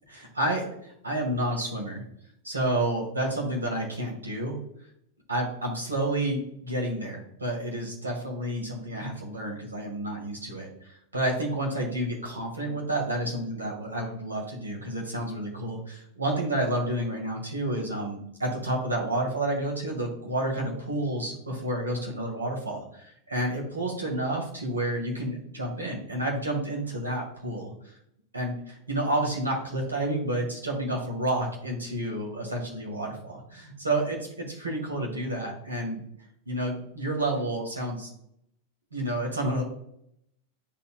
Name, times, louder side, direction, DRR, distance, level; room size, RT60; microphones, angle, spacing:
voice 1, 0.1-2.0 2.4-4.6 5.3-27.7 28.3-36.0 36.5-38.1 38.9-39.6, right 1 dB, 75° right, -1 dB, 2.0 m, -30 dB
11.5 x 4.1 x 2.3 m, 0.75 s
figure-of-eight pair, 90°, 0 cm